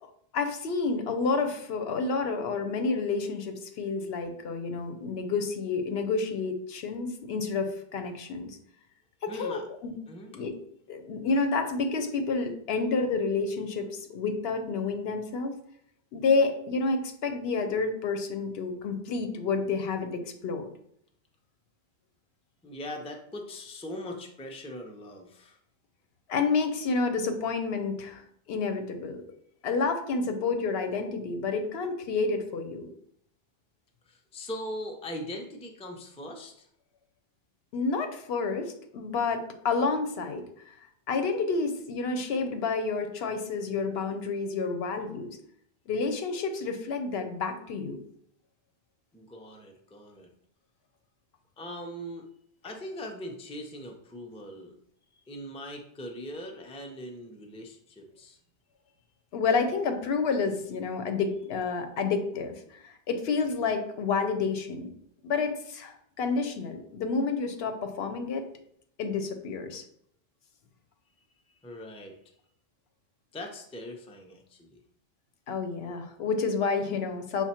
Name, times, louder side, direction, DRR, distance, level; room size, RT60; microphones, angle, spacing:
voice 1, 0.0-8.6 9.2-9.9 10.3-10.5 10.9-15.6 16.1-20.7 26.3-29.2 29.6-32.9 37.7-40.8 41.1-45.4 45.9-48.0 59.3-64.9 65.2-68.5 69.0-69.8 75.5-77.4, left 4 dB, 80° left, 6 dB, 0.9 m, -29 dB
voice 2, 9.3-9.6 10.1-10.3 22.6-25.6 34.1-36.7 49.1-50.3 51.6-52.2 52.6-54.8 55.3-58.4 71.5-72.2 73.3-74.8, left 1 dB, 10° left, 2 dB, 0.3 m, -40 dB
5.9 x 2.1 x 4.2 m, 0.69 s
omnidirectional pair, 1.0 m